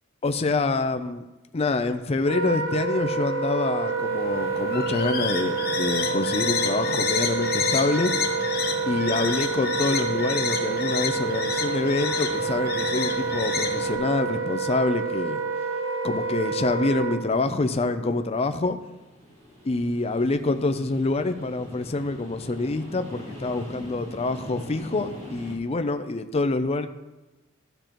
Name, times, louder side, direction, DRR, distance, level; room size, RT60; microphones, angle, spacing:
voice 1, 0.2-1.2 1.5-8.1 8.9-15.4 16.0-18.8 19.6-26.9, left 3 dB, 30° left, 8 dB, 0.5 m, -26 dB
Wind instrument woodwind instrument, 2.2-17.2, right 4 dB, 75° right, 0.9 m, -28 dB
sound 1, 3.9-14.0, left 5 dB, 50° left, 1.1 m, -30 dB
sound 2, 18.6-25.6, left 1 dB, 35° right, 1.9 m, -42 dB
13.5 x 6.6 x 3.0 m, 1.1 s
head